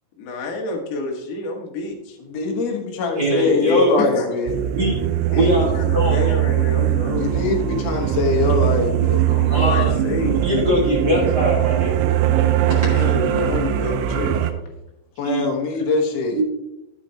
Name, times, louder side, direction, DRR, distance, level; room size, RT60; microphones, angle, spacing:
voice 1, 0.2-2.2 3.3-3.6 4.0-4.3 5.3-7.2 9.3-10.4 12.9-14.3, left 3 dB, 60° left, 0 dB, 2.5 m, -28 dB
voice 2, 2.3-4.6 7.2-9.2 15.2-16.4, left 3 dB, 80° left, 1 dB, 1.5 m, -22 dB
voice 3, 3.2-3.9 4.7-5.0 5.3-6.3 9.3-9.9 10.4-11.9 12.7-13.0 15.2-15.5 16.3-16.4, equal, 45° right, -5 dB, 1.3 m, -22 dB
sound 1, 4.5-14.5, right 12 dB, 80° right, 2.4 m, -20 dB
11.0 x 7.9 x 2.9 m, 0.91 s
omnidirectional pair, 5.2 m